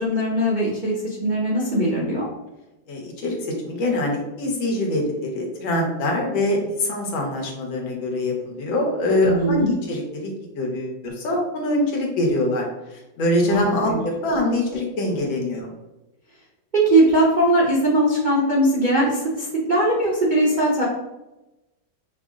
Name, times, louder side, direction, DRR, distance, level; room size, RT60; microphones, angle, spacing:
voice 1, 0.0-2.3 9.2-9.7 13.4-13.6 13.9-14.0 16.7-20.8, right 1 dB, 65° right, -6 dB, 0.4 m, -20 dB
voice 2, 2.9-15.7, left 1 dB, 75° left, 0 dB, 1.7 m, -24 dB
5.7 x 2.1 x 3.5 m, 0.99 s
omnidirectional pair, 2.2 m